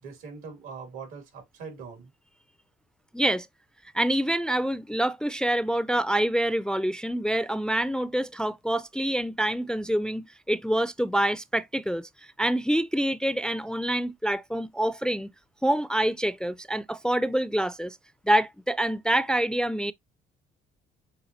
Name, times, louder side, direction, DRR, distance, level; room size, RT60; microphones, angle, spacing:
voice 1, 0.0-2.1, right 5 dB, 90° right, 2.5 m, -42 dB
voice 2, 3.1-3.5 3.9-12.1 12.4-15.3 15.6-18.0 18.2-19.9, right 1 dB, 5° left, 0.3 m, -26 dB
7.2 x 2.7 x 2.6 m
supercardioid pair, 70°, 21 cm